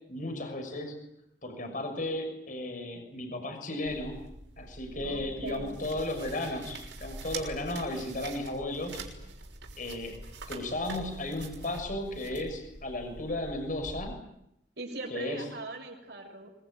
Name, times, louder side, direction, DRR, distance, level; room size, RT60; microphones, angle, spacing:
voice 1, 0.1-1.0 1.4-4.2 4.6-9.0 9.8-10.2 10.5-14.2 15.1-15.4, left 1 dB, 45° left, 5 dB, 6.3 m, -34 dB
sound 1, 3.9-14.0, right 3 dB, 80° right, 6.3 m, -44 dB
voice 2, 4.9-5.8 14.8-16.5, right 2 dB, 65° right, 3 dB, 6.7 m, -40 dB
25.5 x 23.0 x 9.3 m, 0.79 s
head